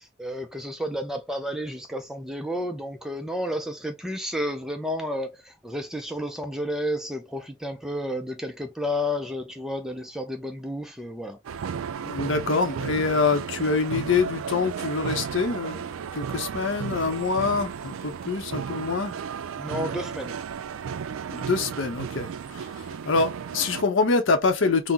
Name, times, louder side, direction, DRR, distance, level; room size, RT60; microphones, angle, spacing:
voice 1, 0.0-11.4 19.6-20.4, equal, ahead, 0.3 m, -31 dB
sound 1, 11.4-23.8, right 7 dB, 90° right, 0.3 m, -34 dB
voice 2, 12.1-19.1 21.3-24.9, left 4 dB, 70° left, 0.6 m, -25 dB
3.7 x 2.0 x 2.6 m
head